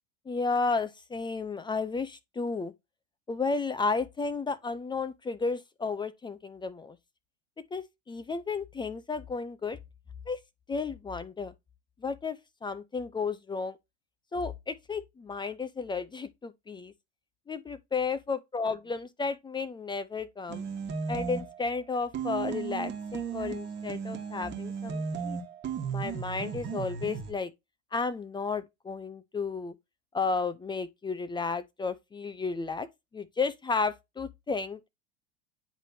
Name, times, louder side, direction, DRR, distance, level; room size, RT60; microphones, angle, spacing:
voice 1, 0.3-2.7 3.3-7.0 7.7-9.8 10.3-10.4 10.7-11.5 12.0-13.8 14.3-16.9 17.5-20.6 21.1-25.4 25.9-27.5 27.9-29.7 30.1-32.9 33.1-34.9, left 4 dB, 15° left, 0.5 m, -33 dB
sound 1, 20.5-21.7 22.1-27.3, right 6 dB, 30° right, 1.5 m, -35 dB
10.0 x 3.4 x 2.7 m
hypercardioid pair, 110°, 36 cm